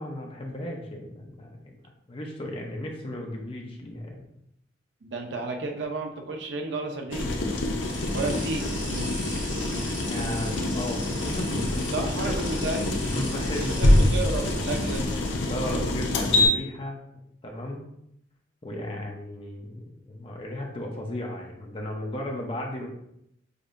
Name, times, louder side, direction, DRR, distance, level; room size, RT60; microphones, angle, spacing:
voice 1, 0.0-1.8 2.1-4.2 10.0-12.3 13.1-14.0 15.4-17.0 17.4-17.8 18.6-22.9, left 1 dB, 30° left, 0 dB, 0.7 m, -35 dB
voice 2, 5.0-7.3 8.1-8.7 11.9-12.8 13.7-15.1, right 3 dB, 70° right, 3 dB, 0.7 m, -32 dB
sound 1, 7.1-16.5, left 1 dB, 85° left, 0.7 m, -25 dB
sound 2, 7.8-15.3, equal, 5° right, 1.4 m, -40 dB
6.5 x 2.7 x 2.6 m, 0.76 s
head